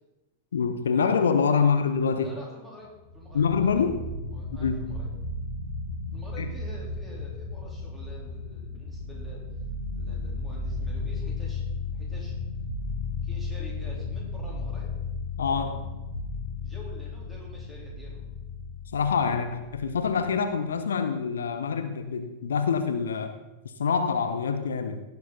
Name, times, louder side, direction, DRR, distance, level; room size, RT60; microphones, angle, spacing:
voice 1, 0.5-2.3 3.3-4.0 4.6-4.9 6.4-6.5 15.4-15.9 18.9-23.3 23.8-25.0, left 6 dB, 65° left, 8 dB, 0.7 m, -25 dB
voice 2, 2.2-3.8 4.3-5.1 6.1-9.4 9.9-11.6 11.9-12.3 13.2-14.9 16.6-18.2, left 1 dB, 10° right, -4 dB, 3.8 m, -47 dB
sound 1, 3.0-20.3, left 3 dB, 85° left, 1.6 m, -34 dB
16.5 x 6.9 x 4.0 m, 1.0 s
figure-of-eight pair, 90°, 0 cm